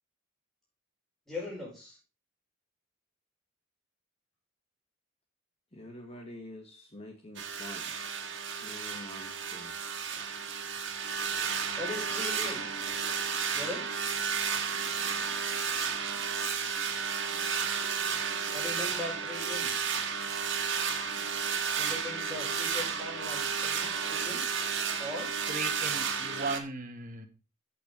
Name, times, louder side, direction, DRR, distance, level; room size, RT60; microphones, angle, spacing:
voice 1, 1.3-2.0 11.8-12.7 13.5-13.9 18.5-19.7 21.8-24.4 25.0-25.3, left 2 dB, ahead, 5.3 m, -39 dB
voice 2, 5.7-7.9 8.6-9.7, left 1 dB, 30° left, 1.7 m, -47 dB
sound 1, 7.4-26.6, right 6 dB, 60° right, 2.0 m, -32 dB
voice 3, 25.5-27.3, right 3 dB, 40° right, 1.8 m, -37 dB
16.0 x 6.0 x 3.4 m
head